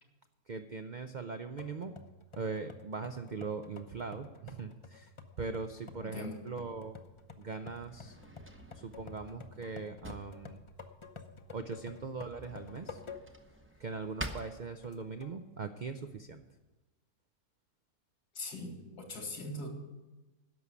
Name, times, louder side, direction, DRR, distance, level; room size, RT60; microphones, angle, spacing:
voice 1, 0.5-1.9 2.4-5.1 5.4-7.0 7.4-8.2 8.7-10.6 11.5-13.0 13.8-16.4, right 4 dB, 70° right, 7 dB, 0.4 m, -40 dB
sound 1, 1.6-13.5 14.0-14.1 14.8-15.4, left 4 dB, 35° left, 0.5 m, -51 dB
voice 2, 6.0-6.4 18.3-19.7, left 2 dB, 85° left, 3 dB, 2.5 m, -41 dB
Drawer open or close, 6.6-15.3, right 1 dB, 15° right, 0.6 m, -49 dB
11.0 x 7.0 x 9.6 m, 1.2 s
omnidirectional pair, 1.6 m